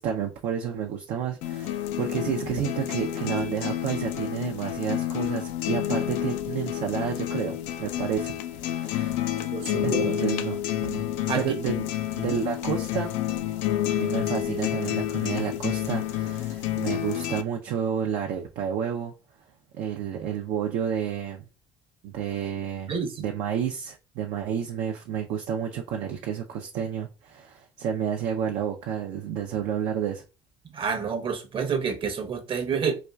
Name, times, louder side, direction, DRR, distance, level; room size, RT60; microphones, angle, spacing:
voice 1, 0.0-9.2 9.8-11.1 11.3-11.9 12.1-13.1 13.9-19.1 19.8-21.4 22.0-30.2, right 8 dB, 75° right, 0.5 m, -30 dB
sound 1, 1.4-17.4, left 12 dB, 80° left, 0.4 m, -29 dB
voice 2, 9.5-10.0 11.3-11.5 22.9-23.1 30.7-33.0, right 6 dB, 45° right, 0.8 m, -28 dB
4.2 x 2.4 x 2.3 m
supercardioid pair, 75°, 12 cm